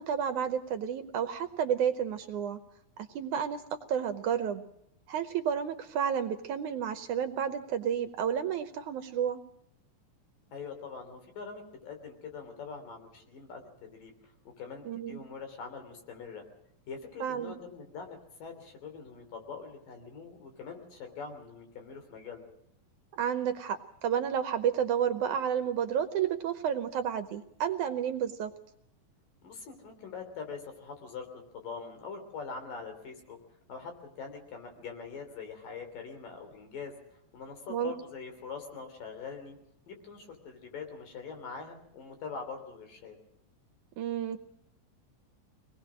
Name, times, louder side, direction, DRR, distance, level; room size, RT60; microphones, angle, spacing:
voice 1, 0.0-2.6 3.2-4.6 5.1-9.4 14.9-15.3 17.2-17.6 23.1-28.5 37.7-37.9 44.0-44.4, right 8 dB, 70° right, 8 dB, 2.1 m, -31 dB
voice 2, 10.5-14.1 14.6-16.4 16.9-22.4 29.4-33.4 33.7-36.9 37.3-39.6 39.9-43.2, left 5 dB, 70° left, 5 dB, 4.8 m, -43 dB
24.0 x 19.0 x 6.2 m, 0.77 s
omnidirectional pair, 4.1 m